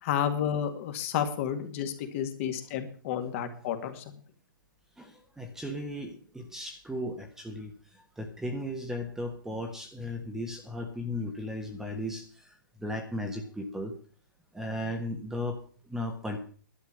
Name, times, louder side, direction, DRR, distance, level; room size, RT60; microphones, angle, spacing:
voice 1, 0.0-4.2, left 9 dB, 40° left, 6 dB, 2.1 m, -31 dB
voice 2, 5.0-13.9 14.5-16.4, left 1 dB, 5° right, 4 dB, 1.4 m, -36 dB
11.5 x 7.1 x 8.4 m, 0.42 s
hypercardioid pair, 145°, 11 cm